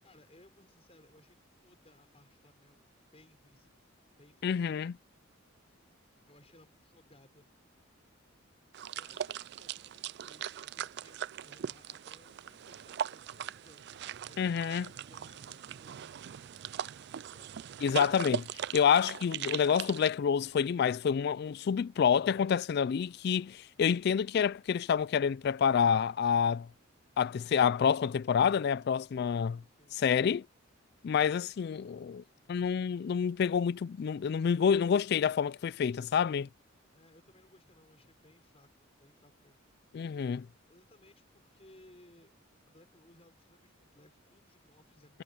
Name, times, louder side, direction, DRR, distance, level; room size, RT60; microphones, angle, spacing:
voice 1, 0.0-3.8 4.2-4.7 6.3-7.5 9.0-16.3 17.3-17.5 29.7-30.0 36.9-39.6 40.7-42.3 42.7-45.2, left 1 dB, 30° left, 6.2 m, -62 dB
voice 2, 4.4-4.9 14.4-14.9 17.8-18.5 18.7-26.7 27.2-29.6 29.9-30.5 31.0-32.2 32.5-36.5 39.9-40.5, left 7 dB, 50° left, 0.3 m, -28 dB
sound 1, 8.7-20.1, right 9 dB, 55° right, 0.4 m, -40 dB
head